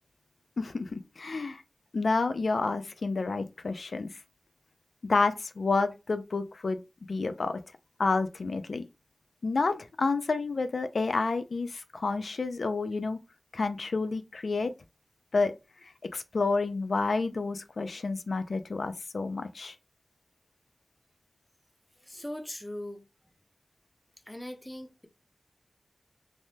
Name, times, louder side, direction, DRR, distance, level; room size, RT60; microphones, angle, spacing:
voice 1, 0.6-1.6 1.9-4.2 5.0-6.8 7.1-7.6 8.0-8.8 9.4-13.2 13.5-14.7 15.3-15.5 15.8-19.8, left 3 dB, 80° left, 0.3 m, -29 dB
voice 2, 22.0-23.0 24.3-25.1, left 1 dB, 10° left, 0.5 m, -40 dB
3.3 x 2.1 x 2.7 m
wide cardioid pair, 90°, 0 cm